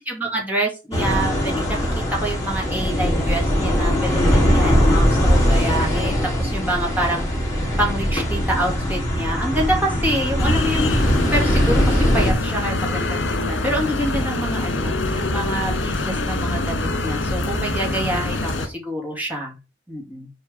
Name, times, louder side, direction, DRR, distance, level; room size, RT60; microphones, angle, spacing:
voice 1, 0.1-7.2 7.8-19.5 19.9-20.3, right 1 dB, 10° right, -2 dB, 2.5 m, -27 dB
sound 1, 0.9-12.3, equal, 15° left, 3.0 m, -20 dB
sound 2, 10.4-18.7, left 2 dB, 80° left, 1.8 m, -24 dB
7.0 x 4.4 x 5.3 m, 0.29 s
head